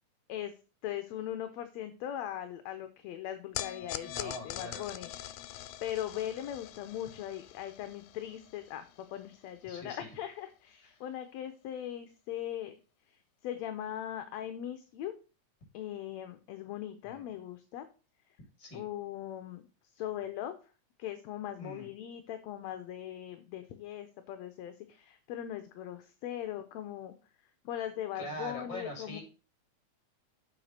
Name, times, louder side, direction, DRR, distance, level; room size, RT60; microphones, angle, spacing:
voice 1, 0.8-12.8 13.4-15.1 15.7-17.9 18.7-19.6 19.9-20.5 21.0-27.1 27.7-29.2, left 11 dB, 75° left, 9 dB, 1.9 m, -40 dB
sound 1, 3.6-10.0, left 13 dB, 90° left, 2.0 m, -44 dB
voice 2, 4.0-4.8 9.7-10.1 17.0-17.2 18.6-18.8 21.6-21.9 28.1-29.2, left 1 dB, 40° left, 3 dB, 3.5 m, -42 dB
7.6 x 5.0 x 6.5 m, 0.34 s
omnidirectional pair, 3.4 m